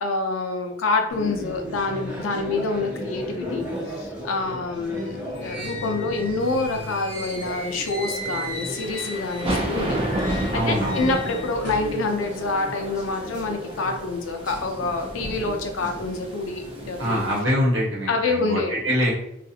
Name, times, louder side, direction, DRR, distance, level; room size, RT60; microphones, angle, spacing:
voice 1, 0.0-3.7 4.0-10.0 10.2-17.2 18.1-18.7, left 3 dB, 85° left, 4 dB, 0.5 m, -27 dB
sound 1, 1.1-17.2, equal, 10° right, 1.3 m, -36 dB
sound 2, 5.0-9.7 10.0-11.9, equal, 40° left, 0.9 m, -37 dB
sound 3, 6.5-17.4, right 1 dB, 25° right, 0.5 m, -32 dB
voice 2, 10.5-11.2 17.0-19.1, equal, 70° right, -5 dB, 1.0 m, -24 dB
2.4 x 2.4 x 2.7 m, 0.77 s
head